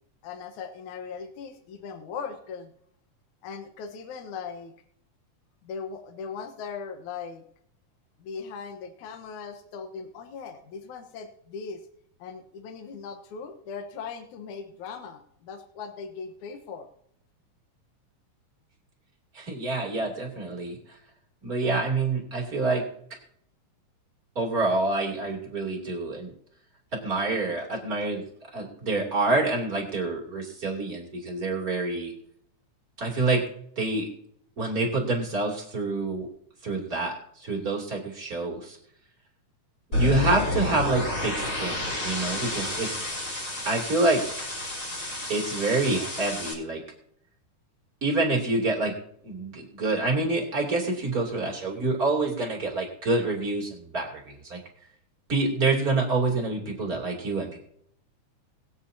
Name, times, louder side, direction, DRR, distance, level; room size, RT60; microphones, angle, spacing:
voice 1, 0.2-2.7 3.4-4.7 5.6-7.4 8.2-11.8 12.2-16.9, left 5 dB, 70° left, 5 dB, 2.5 m, -39 dB
voice 2, 19.3-21.0 21.4-22.8 24.3-26.3 26.9-28.2 28.5-32.1 33.0-33.4 33.8-34.1 34.6-36.3 36.6-38.8 39.9-42.9 43.6-44.5 44.7-44.8 45.3-46.8 48.0-48.9 49.2-54.6 55.3-57.6, right 3 dB, 30° right, -1 dB, 3.1 m, -27 dB
sound 1, 39.9-46.5, left 2 dB, 30° left, 5.4 m, -30 dB
22.0 x 8.6 x 2.8 m, 0.67 s
omnidirectional pair, 3.6 m